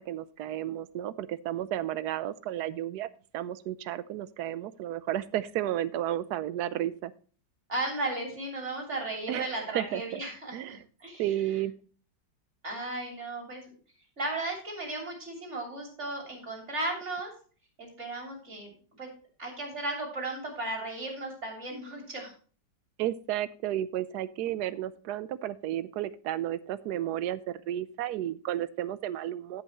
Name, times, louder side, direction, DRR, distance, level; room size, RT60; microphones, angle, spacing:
voice 1, 0.0-3.1 3.3-7.1 9.3-10.2 10.5-10.8 11.2-11.7 23.0-29.6, right 12 dB, 70° right, 16 dB, 1.1 m, -32 dB
voice 2, 7.7-11.3 12.6-13.7 14.2-17.3 17.8-18.7 19.0-19.1 19.4-22.3, right 2 dB, 40° right, 1 dB, 3.4 m, -35 dB
16.0 x 5.5 x 3.0 m, 0.40 s
omnidirectional pair, 2.0 m